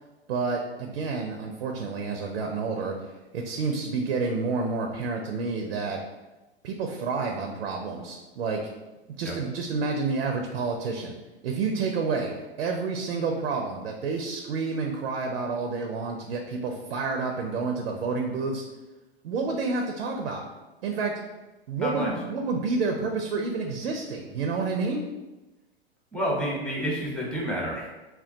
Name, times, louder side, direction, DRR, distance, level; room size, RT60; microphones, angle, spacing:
voice 1, 0.3-6.0 6.6-8.6 9.2-11.1 11.4-18.6 19.2-20.5 20.8-21.1 21.7-25.0, right 4 dB, 80° right, 3 dB, 0.5 m, -29 dB
voice 2, 21.8-22.1 26.1-27.9, equal, 5° left, -4 dB, 0.8 m, -29 dB
2.3 x 2.2 x 3.6 m, 1.1 s
hypercardioid pair, 100°, 31 cm